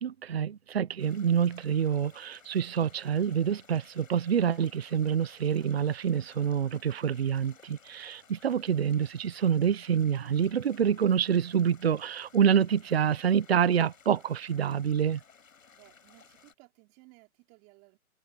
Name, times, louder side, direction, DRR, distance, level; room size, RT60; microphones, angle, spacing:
voice 1, 0.0-15.2, right 8 dB, 45° right, 0.9 m, -27 dB
sound 1, 1.0-16.5, left 6 dB, 65° left, 6.8 m, -58 dB
voice 2, 15.7-18.0, right 29 dB, 20° right, 5.2 m, -58 dB
hypercardioid pair, 160°, 44 cm